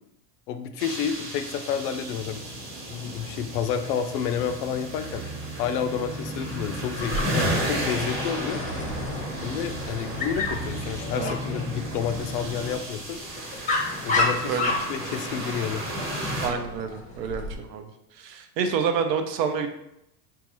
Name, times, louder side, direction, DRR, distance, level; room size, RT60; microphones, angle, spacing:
voice 1, 0.5-5.2 5.6-8.6 9.4-13.2 14.0-15.8, left 8 dB, 75° left, 9 dB, 0.6 m, -30 dB
sound 1, 0.8-16.5, right 1 dB, 25° right, 1.0 m, -34 dB
sound 2, 1.7-12.8, equal, 45° right, 0.7 m, -37 dB
Dog, 7.0-17.5, left 3 dB, 15° left, 0.6 m, -32 dB
voice 2, 14.4-14.7 16.4-17.9 18.2-19.7, right 6 dB, 80° right, 6 dB, 0.7 m, -28 dB
3.8 x 2.4 x 3.0 m, 0.81 s
supercardioid pair, 110°, 48 cm